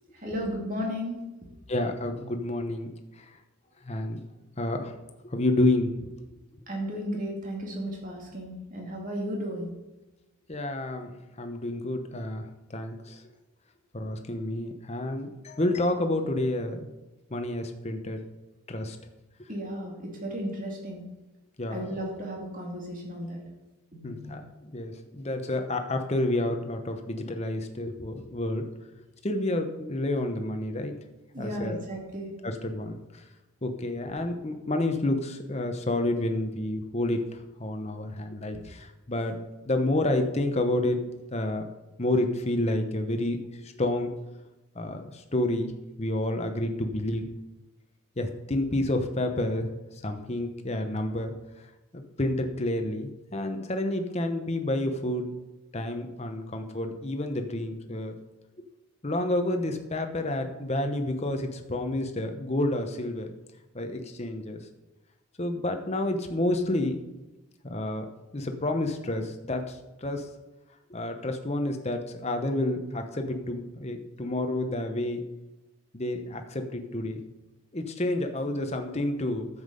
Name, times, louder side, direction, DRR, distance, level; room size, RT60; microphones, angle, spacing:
voice 1, 0.1-1.2 6.7-9.7 19.5-19.9 20.2-21.0 21.7-23.4 23.9-24.3 31.3-32.3, equal, 35° right, -1 dB, 2.3 m, -34 dB
voice 2, 1.7-3.3 3.8-4.2 4.6-4.9 5.3-6.1 10.5-13.2 13.9-16.9 17.3-18.2 18.7-19.0 21.6-22.0 24.0-28.7 29.2-30.9 31.4-31.8 32.4-33.2 33.6-39.4 39.6-41.0 41.3-41.7 42.0-43.4 43.6-44.1 44.7-45.7 46.0-47.3 48.2-49.7 50.0-51.3 51.9-55.3 55.7-58.1 59.0-63.3 63.7-64.6 65.4-67.0 67.6-68.1 68.3-70.3 70.9-75.2 75.9-77.2 77.7-79.5, left 1 dB, 30° left, 5 dB, 0.9 m, -29 dB
10.0 x 7.3 x 5.3 m, 1.1 s
head